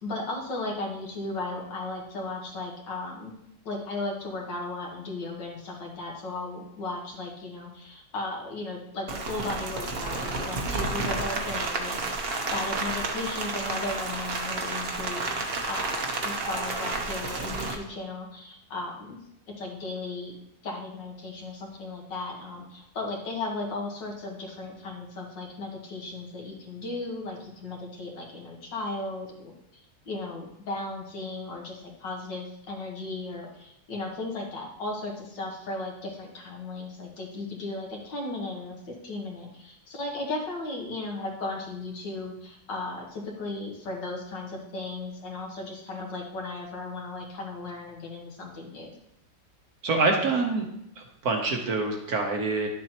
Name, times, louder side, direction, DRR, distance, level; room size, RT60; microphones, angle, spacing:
voice 1, 0.0-3.3 3.7-19.2 19.6-20.4 20.6-29.5 30.1-48.9, left 2 dB, 65° left, 0 dB, 2.1 m, -36 dB
Rain, 9.1-17.7, right 3 dB, 45° right, 0.9 m, -31 dB
voice 2, 49.8-50.6 51.2-52.7, right 3 dB, 60° right, 2 dB, 1.3 m, -25 dB
11.0 x 7.2 x 3.0 m, 0.79 s
omnidirectional pair, 2.1 m